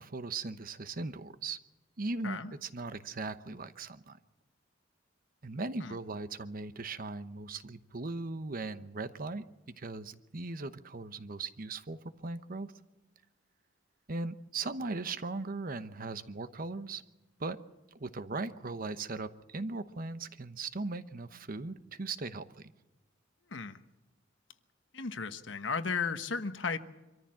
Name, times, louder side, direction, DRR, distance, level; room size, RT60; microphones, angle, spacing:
voice 1, 0.0-1.6 2.0-4.2 5.4-9.4 9.8-12.7 14.1-17.0 17.4-17.6 17.9-22.7, right 3 dB, 50° right, 12 dB, 1.0 m, -38 dB
voice 2, 23.5-23.8 24.9-26.8, left 5 dB, 75° left, 10 dB, 1.2 m, -35 dB
24.5 x 14.0 x 7.6 m, 1.1 s
head